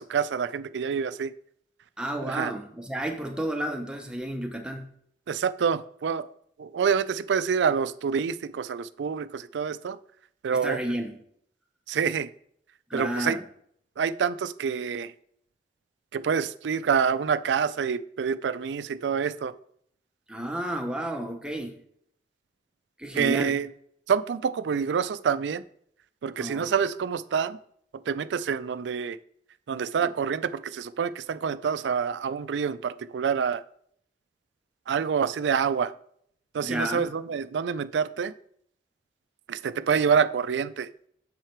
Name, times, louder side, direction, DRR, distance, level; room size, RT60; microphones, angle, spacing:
voice 1, 0.0-1.3 2.2-2.5 5.3-6.3 6.6-10.0 10.4-10.8 11.9-12.3 12.9-13.4 14.0-15.1 16.1-19.5 23.1-23.7 24.1-25.6 26.2-27.6 28.1-29.2 29.7-33.6 34.9-35.9 36.5-38.3 39.5-40.9, right 6 dB, 85° right, 14 dB, 0.4 m, -27 dB
voice 2, 2.0-4.9 10.5-11.1 12.9-13.4 20.3-21.8 23.0-23.6 26.4-26.7 30.0-30.1 36.6-37.1, right 1 dB, 5° right, 3 dB, 0.7 m, -32 dB
7.5 x 4.8 x 4.5 m, 0.67 s
head